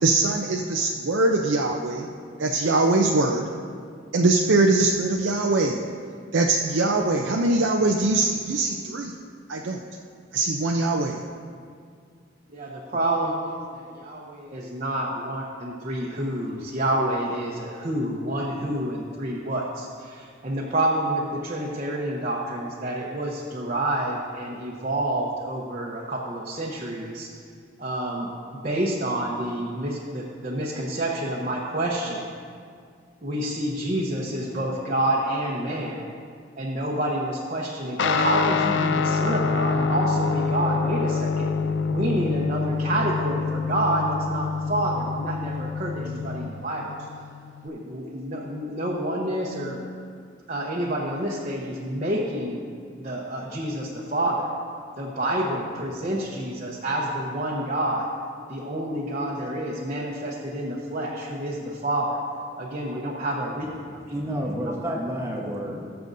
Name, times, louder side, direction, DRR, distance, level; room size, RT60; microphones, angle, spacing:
voice 1, 0.0-2.1 2.4-3.5 4.1-5.8 6.3-9.1 9.5-9.8 10.3-11.2, right 2 dB, 85° right, 0 dB, 0.6 m, -22 dB
voice 2, 12.5-27.3 27.8-32.3 33.2-36.1 36.6-41.5 41.9-46.9 47.6-49.8 50.5-52.6 53.0-54.5 55.0-58.1 58.5-62.2 62.6-64.0 64.6-65.0, right 1 dB, 40° right, -4 dB, 0.9 m, -28 dB
Guitar, 38.0-47.7, left 5 dB, 75° left, 0.4 m, -26 dB
voice 3, 64.1-65.9, equal, 15° right, -3 dB, 1.1 m, -29 dB
20.5 x 6.9 x 2.7 m, 2.2 s
head